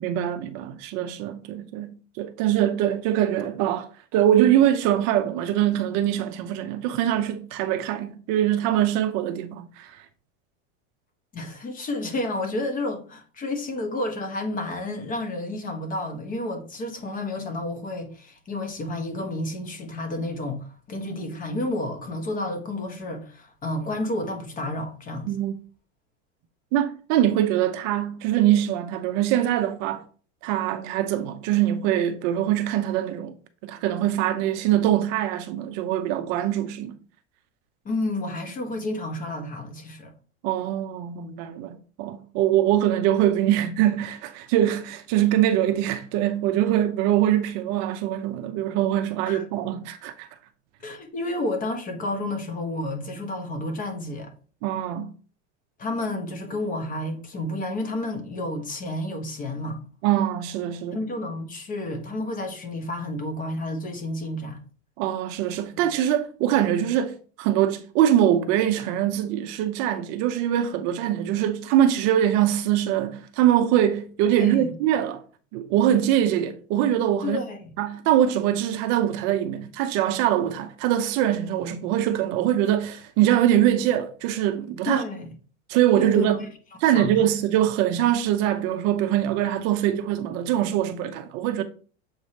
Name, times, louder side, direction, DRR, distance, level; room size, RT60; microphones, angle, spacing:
voice 1, 0.0-10.0 25.3-25.5 26.7-30.0 30.4-33.3 33.6-37.0 40.4-50.3 54.6-55.1 60.0-61.0 65.0-75.2 75.5-77.4 77.8-85.0 85.7-86.4 86.8-91.6, right 11 dB, 45° right, 0.6 m, -23 dB
voice 2, 11.3-25.3 37.8-40.1 49.3-49.4 50.8-54.3 55.8-59.8 60.9-64.6 74.4-74.7 77.2-77.7 84.9-85.3 86.0-86.5 86.9-87.3, left 2 dB, 20° left, 1.1 m, -30 dB
7.2 x 4.8 x 2.9 m
supercardioid pair, 150°, 37 cm